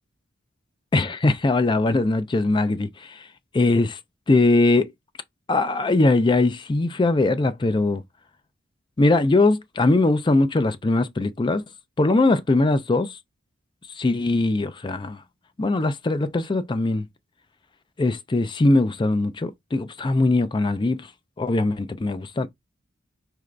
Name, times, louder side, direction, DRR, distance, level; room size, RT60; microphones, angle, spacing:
voice 1, 0.9-3.2 3.5-4.0 4.3-4.9 5.5-8.0 9.0-11.6 12.0-13.2 14.0-15.2 15.6-17.1 18.0-21.1 21.4-22.5, left 2 dB, 25° left, 0.4 m, -21 dB
4.7 x 2.5 x 3.3 m
head